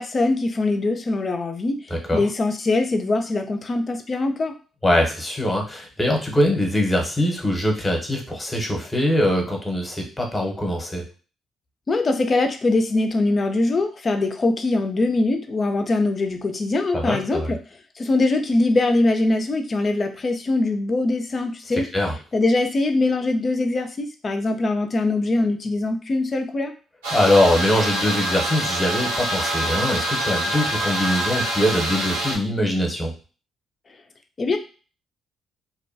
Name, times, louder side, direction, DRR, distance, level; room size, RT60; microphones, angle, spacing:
voice 1, 0.0-1.8 2.1-4.6 11.9-17.6 18.0-21.9 22.3-26.7 34.4-34.6, left 2 dB, 40° left, 5 dB, 0.4 m, -22 dB
voice 2, 1.9-2.3 4.8-11.0 16.9-17.5 21.7-22.2 27.1-33.1, left 1 dB, 20° left, 1 dB, 0.9 m, -22 dB
sound 1, 27.0-32.4, right 1 dB, 80° right, 0.6 m, -26 dB
Wind instrument woodwind instrument, 27.5-31.5, left 2 dB, 15° right, 0.8 m, -32 dB
2.6 x 2.2 x 2.6 m, 0.37 s
hypercardioid pair, 45°, 0 cm